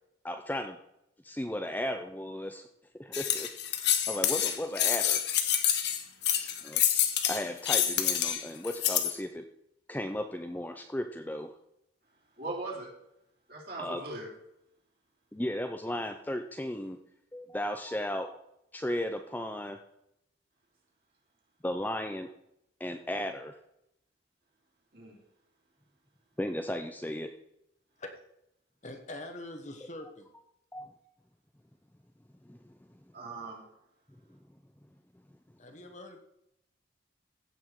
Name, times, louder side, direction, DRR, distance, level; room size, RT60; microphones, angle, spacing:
voice 1, 0.2-0.8 1.2-2.6 3.0-3.5 4.1-5.2 6.6-6.8 7.3-9.4 9.9-11.5 13.8-14.0 15.3-17.0 17.3-18.4 18.7-19.8 21.6-22.3 22.8-23.5 26.4-27.3 30.7-30.9 32.5-32.6, left 1 dB, 10° left, 6 dB, 0.5 m, -35 dB
sound 1, 3.1-9.2, left 10 dB, 55° left, 1.1 m, -27 dB
voice 2, 12.4-12.9 13.5-14.3 24.9-25.2 33.1-33.6, right 2 dB, 50° right, -2 dB, 3.3 m, -39 dB
voice 3, 28.8-30.3 35.6-36.2, left 1 dB, 40° left, 5 dB, 1.3 m, -43 dB
15.5 x 5.9 x 4.6 m, 0.80 s
head